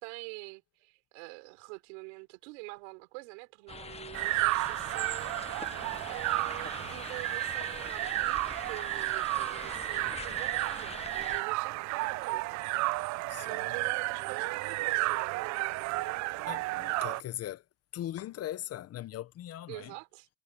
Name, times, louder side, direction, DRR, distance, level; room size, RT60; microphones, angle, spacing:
voice 1, 0.0-5.4 6.1-15.5 19.7-20.3, right 31 dB, 80° right, 4.0 m, -46 dB
sound 1, 3.7-11.4, left 5 dB, 20° left, 0.9 m, -44 dB
sound 2, 4.1-17.2, right 21 dB, 55° right, 0.6 m, -32 dB
voice 2, 13.3-13.6 16.5-17.6 17.9-19.9, left 12 dB, 45° left, 1.2 m, -40 dB
supercardioid pair, 105°, 34 cm